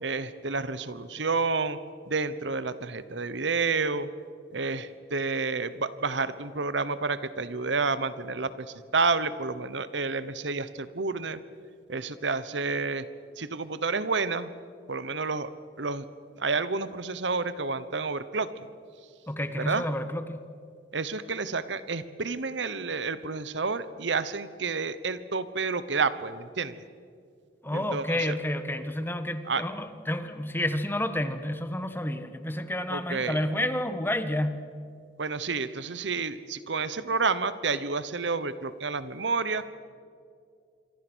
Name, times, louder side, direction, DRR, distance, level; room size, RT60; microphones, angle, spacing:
voice 1, 0.0-1.8 2.1-4.1 4.5-11.4 11.9-13.0 13.4-14.5 14.9-15.5 15.8-16.0 16.4-18.7 19.6-19.8 20.9-26.8 27.7-28.4 29.5-29.6 32.9-33.4 35.2-39.6, right 4 dB, 75° right, 14 dB, 1.1 m, -30 dB
voice 2, 19.3-20.5 27.6-34.6, left 1 dB, 10° left, 10 dB, 1.3 m, -30 dB
27.0 x 24.0 x 6.3 m, 2.3 s
head